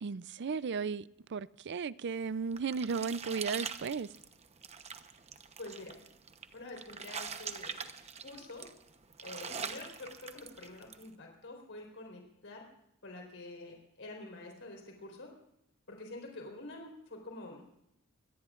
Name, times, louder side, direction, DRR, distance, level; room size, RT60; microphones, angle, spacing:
voice 1, 0.0-4.1, right 5 dB, 55° right, 0.5 m, -35 dB
sound 1, 2.2-11.1, right 6 dB, 30° right, 0.9 m, -44 dB
voice 2, 5.6-5.9 6.5-7.9 8.2-8.7 9.2-12.7 13.0-15.3 15.9-17.6, left 2 dB, 60° left, 4.2 m, -47 dB
25.0 x 18.0 x 2.5 m
head